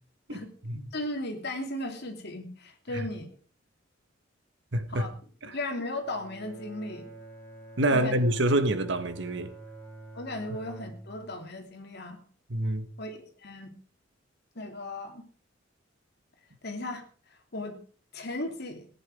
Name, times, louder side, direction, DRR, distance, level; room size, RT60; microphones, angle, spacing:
voice 1, 0.3-0.9 2.9-3.1 4.7-5.1 5.4-5.6 7.8-9.5 12.5-12.9, right 1 dB, 65° right, 1.6 m, -27 dB
voice 2, 0.9-3.3 4.9-5.1 5.5-7.1 7.9-8.1 10.1-12.2 13.0-13.7 14.5-15.2 16.6-17.0 17.5-17.8 18.1-18.9, left 1 dB, 60° left, 3.0 m, -36 dB
Bowed string instrument, 6.0-11.5, right 2 dB, 10° left, 3.9 m, -47 dB
18.5 x 10.0 x 4.9 m
head